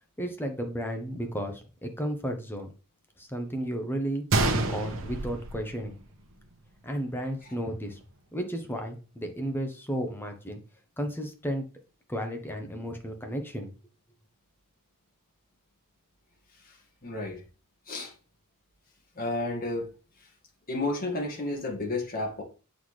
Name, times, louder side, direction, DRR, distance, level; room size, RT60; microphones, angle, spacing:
voice 1, 0.2-2.7 3.2-4.2 4.7-5.9 6.8-8.0 8.3-10.6 11.0-11.6 12.1-13.7, equal, 10° left, 5 dB, 0.9 m, -33 dB
Gunshot gunfire, 4.3-6.3 6.6-6.7 7.4-7.6, right 2 dB, 65° right, 1.0 m, -28 dB
voice 2, 17.0-17.4 17.9-18.1 19.2-19.9 20.7-22.4, left 2 dB, 40° left, 1 dB, 1.8 m, -31 dB
7.7 x 4.1 x 3.2 m, 0.35 s
head